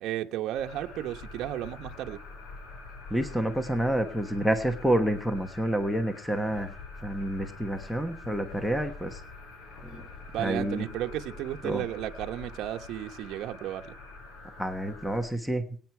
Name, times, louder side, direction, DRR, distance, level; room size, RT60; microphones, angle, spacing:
voice 1, 0.0-2.2 10.3-14.0, right 12 dB, 65° right, 1.1 m, -34 dB
sound 1, 0.5-15.2, left 3 dB, 85° left, 5.6 m, -45 dB
voice 2, 3.1-6.7 7.0-9.1 9.8-10.0 10.4-10.8 11.6-11.8 14.6-15.6, right 1 dB, ahead, 1.2 m, -28 dB
22.5 x 9.4 x 4.5 m
cardioid pair, 175°, 0 cm